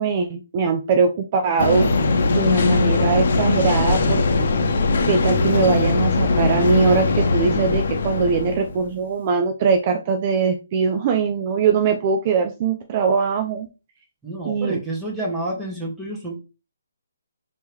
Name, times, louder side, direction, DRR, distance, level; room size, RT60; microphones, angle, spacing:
voice 1, 0.0-1.9 2.3-4.5 5.1-13.7 14.5-14.8, right 5 dB, 35° right, 6 dB, 0.6 m, -21 dB
sound 1, 1.6-8.9, left 3 dB, 55° left, 0.8 m, -20 dB
voice 2, 14.2-16.4, right 1 dB, 5° right, -4 dB, 1.4 m, -29 dB
4.4 x 3.0 x 3.4 m, 0.30 s
figure-of-eight pair, 150°, 0 cm